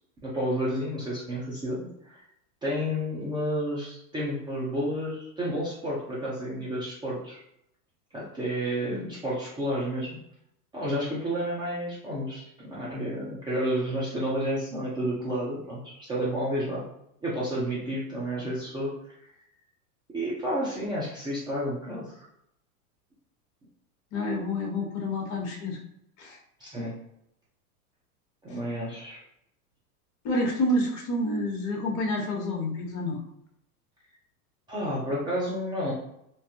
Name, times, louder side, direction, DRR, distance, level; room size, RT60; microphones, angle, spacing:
voice 1, 0.2-2.2 2.6-7.4 8.1-10.2 10.7-16.8 17.2-18.9 20.1-22.3 26.6-27.0 28.4-29.2 34.7-35.9, equal, 10° right, -7 dB, 0.4 m, -31 dB
voice 2, 24.1-25.8 26.2-26.4 30.2-33.2, left 1 dB, 40° left, 0 dB, 1.0 m, -28 dB
2.6 x 2.3 x 2.7 m, 0.77 s
hypercardioid pair, 115°, 47 cm